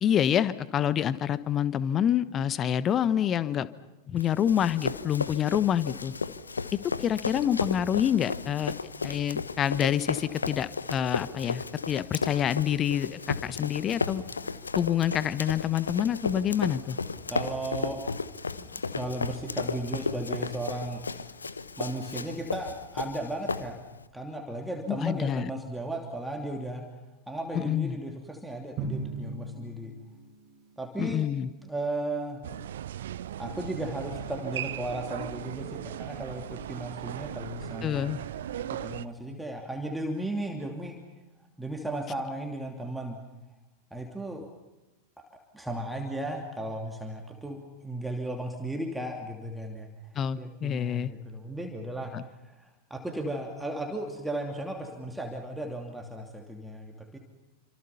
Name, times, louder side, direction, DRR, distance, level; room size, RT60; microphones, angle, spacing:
voice 1, 0.0-3.7 4.1-6.1 7.0-8.7 9.0-14.2 14.8-17.0 24.9-25.5 27.5-28.0 31.0-31.5 37.8-38.2 50.1-51.1 52.1-52.2, left 9 dB, 30° left, 16 dB, 1.2 m, -27 dB
Run, 4.2-24.0, left 4 dB, 75° left, 1.1 m, -34 dB
voice 2, 17.3-18.0 18.5-21.0 21.8-23.8 24.1-26.8 27.3-29.9 30.8-31.3 31.6-32.4 33.4-38.1 38.6-41.0 41.6-43.2 43.9-44.5 45.2-49.9 50.3-52.1 52.4-57.2, right 1 dB, 5° right, 2 dB, 2.8 m, -35 dB
Drum, 28.8-30.9, right 3 dB, 35° right, 3.8 m, -38 dB
sound 1, 32.4-39.1, right 11 dB, 60° right, 0.8 m, -38 dB
28.5 x 26.5 x 5.7 m, 1.0 s
figure-of-eight pair, 90°, 0 cm